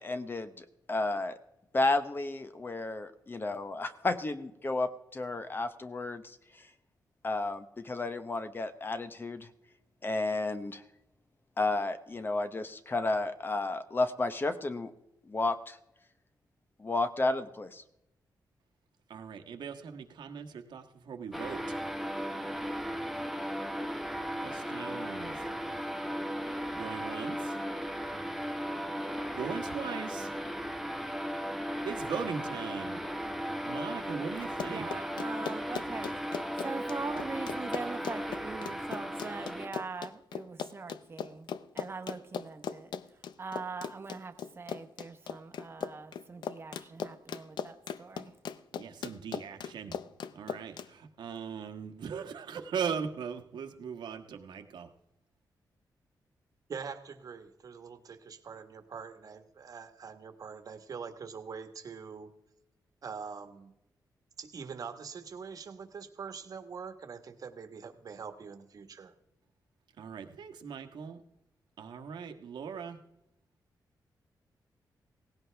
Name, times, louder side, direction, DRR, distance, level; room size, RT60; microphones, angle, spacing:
voice 1, 0.0-1.4 1.7-6.4 7.2-9.5 10.0-10.8 11.6-14.9 15.3-15.8 16.8-17.8, left 2 dB, 30° left, 10 dB, 0.9 m, -32 dB
voice 2, 19.1-21.8 24.4-25.4 26.7-27.6 29.3-30.3 31.8-33.0 33.6-34.9 48.7-49.9 50.3-54.9 70.0-71.2 71.8-73.0, right 6 dB, 80° right, 5 dB, 1.4 m, -39 dB
sound 1, 21.3-39.7, equal, ahead, 0.9 m, -36 dB
Run, 34.4-50.9, left 8 dB, 75° left, 0.6 m, -39 dB
voice 3, 34.7-36.3 36.6-41.5 41.7-42.9 43.4-48.3, right 4 dB, 30° right, 7 dB, 1.1 m, -42 dB
voice 4, 56.7-62.3 63.0-63.7 64.4-69.1, right 6 dB, 55° right, 8 dB, 1.4 m, -44 dB
17.5 x 16.0 x 3.4 m, 0.86 s
cardioid pair, 115°, 8 cm